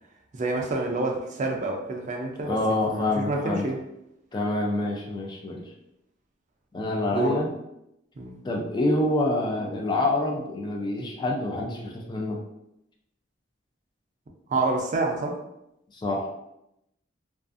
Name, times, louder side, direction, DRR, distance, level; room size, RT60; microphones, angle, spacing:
voice 1, 0.3-3.8 7.1-7.3 8.2-8.4 14.5-15.4, right 2 dB, 40° right, 2 dB, 0.4 m, -28 dB
voice 2, 2.4-3.7 4.3-5.6 6.7-7.5 8.4-12.4 15.9-16.3, left 2 dB, 25° left, 0 dB, 0.4 m, -26 dB
2.4 x 2.4 x 2.4 m, 0.83 s
head